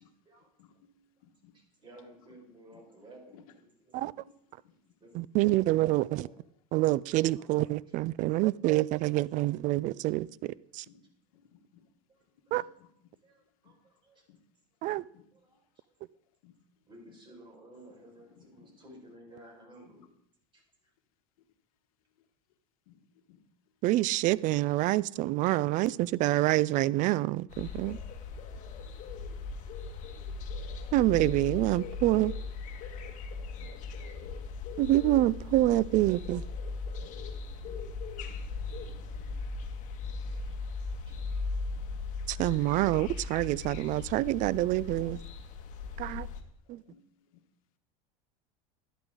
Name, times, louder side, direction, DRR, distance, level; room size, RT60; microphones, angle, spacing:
voice 1, 0.6-1.5 2.7-2.8 3.3-3.4 4.0-4.3 4.6-4.7 6.8-6.9 8.1-8.4 9.6-10.3 10.9-11.9 12.5-12.9 13.6-13.7 14.3-14.4 14.9-15.2 16.4-16.6 18.3-18.7 20.0-20.1 22.9-23.4 25.1-25.2 26.4-26.5 28.3-28.9 29.3-29.4 29.8-29.9 30.1-30.2 30.5-30.7 33.4-34.6 35.5-35.9 37.0-38.0 38.3-39.4 40.0-40.5 41.1-41.2 41.7-41.9 43.0-43.1 43.4-43.5 43.9-44.0 45.2-45.3 45.8-46.1 46.7-47.0 47.3-47.4, left 8 dB, 85° left, 1.2 m, -61 dB
voice 2, 1.5-4.2 4.6-5.2 5.8-6.4 7.4-7.9 12.1-12.2 13.2-14.2 15.3-15.6 16.9-20.0 20.5-20.6 29.5-29.9 40.3-40.6 41.0-41.2, right 1 dB, 25° right, 5.0 m, -55 dB
voice 3, 5.1-6.2 6.7-10.9 12.5-12.6 14.8-15.0 23.8-28.0 30.9-32.3 34.8-36.4 42.3-45.2 46.0-46.3 46.7-46.8, right 17 dB, 45° right, 0.4 m, -27 dB
sound 1, 27.5-46.4, left 4 dB, 45° left, 1.6 m, -38 dB
11.5 x 11.5 x 3.8 m
supercardioid pair, 125°, 18 cm